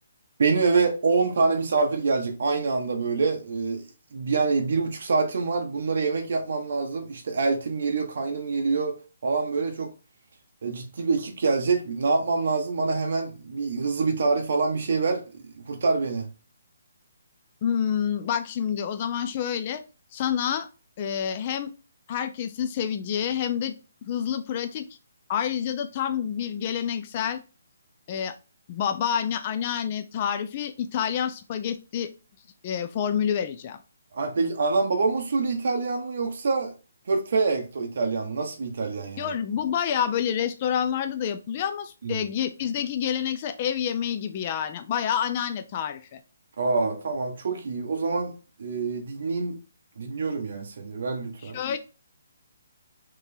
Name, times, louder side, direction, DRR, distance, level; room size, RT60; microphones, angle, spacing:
voice 1, 0.4-3.8 4.1-9.9 10.6-16.3 34.1-36.7 37.1-39.3 42.0-42.2 46.6-49.6 50.0-51.6, right 4 dB, 60° right, 0.7 m, -26 dB
voice 2, 17.6-19.8 20.1-20.7 21.0-21.7 22.1-23.8 24.1-24.8 25.3-27.4 28.1-28.4 28.7-32.1 32.6-33.8 39.2-46.2 51.4-51.8, left 8 dB, 35° left, 0.4 m, -28 dB
3.7 x 3.0 x 2.7 m
hypercardioid pair, 155°, 0 cm